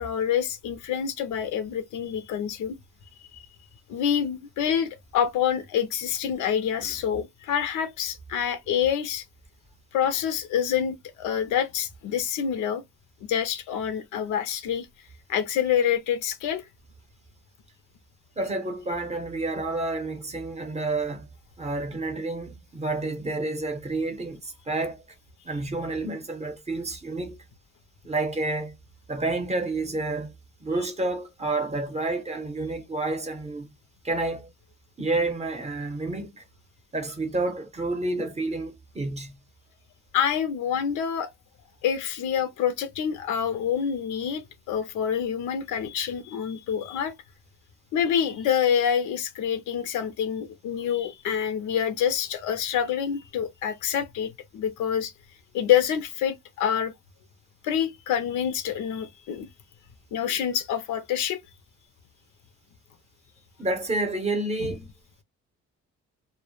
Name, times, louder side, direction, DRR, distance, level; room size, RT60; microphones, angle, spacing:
voice 1, 0.0-2.8 3.3-3.5 3.9-9.2 9.9-12.8 13.2-14.9 15.3-16.6 40.1-41.3 41.8-47.1 47.9-55.1 55.5-56.9 57.6-59.5 60.1-61.4, left 8 dB, 80° left, 0.5 m, -27 dB
voice 2, 18.4-21.3 21.6-25.0 25.4-27.4 28.0-28.8 29.1-30.3 30.6-33.7 34.0-34.5 35.0-36.4 36.9-39.4 63.6-64.9, right 2 dB, 20° right, 0.6 m, -29 dB
2.1 x 2.0 x 2.9 m
cardioid pair, 90°, 30 cm